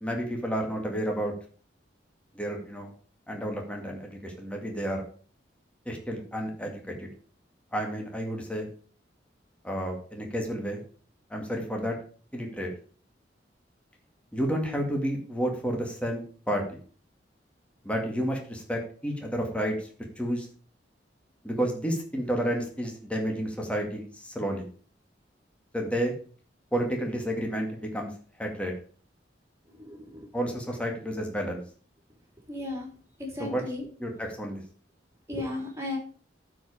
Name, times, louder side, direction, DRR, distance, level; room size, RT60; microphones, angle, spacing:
voice 1, 0.0-1.3 2.3-2.9 3.3-5.0 5.9-7.1 7.7-8.7 9.6-10.8 11.3-12.0 12.3-12.7 14.3-16.2 16.5-16.8 17.8-19.9 20.2-20.5 21.4-24.7 25.7-26.1 26.7-28.1 28.4-28.7 30.3-31.6 33.4-33.6 34.0-34.6, equal, 5° left, 1 dB, 2.0 m, -31 dB
voice 2, 29.8-30.2 32.5-32.9 33.2-33.9 35.3-36.0, left 2 dB, 15° right, -1 dB, 3.6 m, -35 dB
12.0 x 5.1 x 4.9 m, 0.42 s
head